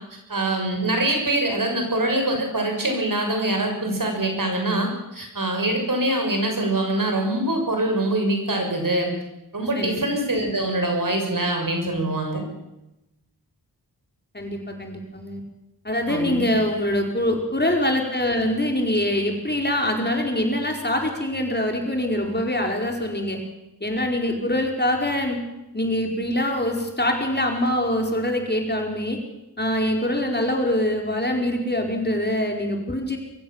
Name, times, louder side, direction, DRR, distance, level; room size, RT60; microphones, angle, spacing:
voice 1, 0.3-9.1 9.5-12.4 16.1-16.4, right 1 dB, 55° right, 3 dB, 6.6 m, -24 dB
voice 2, 14.3-15.4 15.8-23.4 23.8-25.4 25.7-29.2 29.6-33.2, left 1 dB, 25° left, 2 dB, 4.9 m, -24 dB
23.5 x 15.0 x 7.5 m, 0.93 s
cardioid pair, 45°, 40 cm